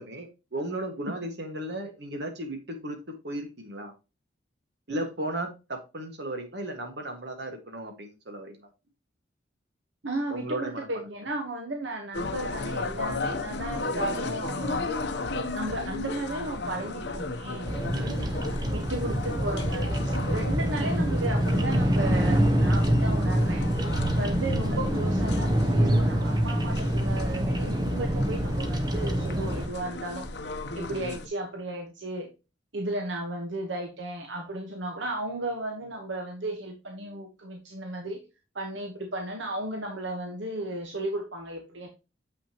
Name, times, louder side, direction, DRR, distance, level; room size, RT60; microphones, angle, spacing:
voice 1, 0.0-3.9 4.9-8.6 10.3-10.9 17.9-18.4 24.7-24.9 31.1-31.2, right 1 dB, 60° right, 5 dB, 1.7 m, -35 dB
voice 2, 10.0-15.1 15.5-17.7 18.7-20.0 20.3-23.7 24.2-30.3 30.7-32.3 32.7-38.2 38.5-41.9, right 1 dB, 75° right, 3 dB, 1.2 m, -34 dB
sound 1, 12.1-31.3, left 2 dB, 60° left, 0.8 m, -35 dB
Bird vocalization bird call bird song, 17.7-29.7, equal, 20° right, 0.8 m, -25 dB
7.2 x 5.9 x 2.9 m, 0.28 s
head